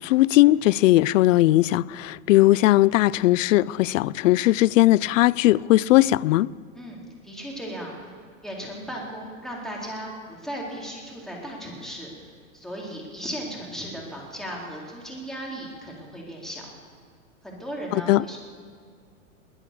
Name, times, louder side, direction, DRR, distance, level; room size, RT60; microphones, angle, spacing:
voice 1, 0.0-6.5 17.9-18.2, left 16 dB, 65° left, 0.5 m, -19 dB
voice 2, 6.8-7.9 8.4-12.1 12.5-16.7 17.4-18.4, equal, ahead, 4.1 m, -36 dB
20.5 x 10.0 x 7.0 m
hypercardioid pair, 120°, 41 cm